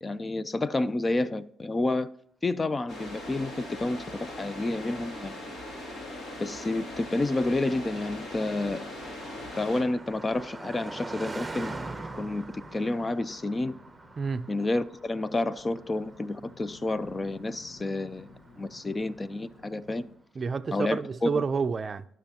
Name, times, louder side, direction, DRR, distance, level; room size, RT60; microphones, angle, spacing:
voice 1, 0.0-2.1 2.4-5.4 6.4-8.9 9.6-11.7 12.2-13.7 14.5-18.3 18.6-20.1 20.7-21.4, left 2 dB, 25° left, 0.4 m, -30 dB
sound 1, 2.9-9.8, left 1 dB, 65° left, 2.8 m, -40 dB
Car passing by, 3.3-19.7, right 2 dB, 15° right, 0.8 m, -45 dB
sound 2, 12.3-20.2, left 3 dB, 85° left, 1.4 m, -54 dB
voice 2, 14.2-14.5 20.3-22.1, right 5 dB, 40° right, 0.5 m, -29 dB
15.5 x 6.3 x 2.8 m
cardioid pair, 90°, 0 cm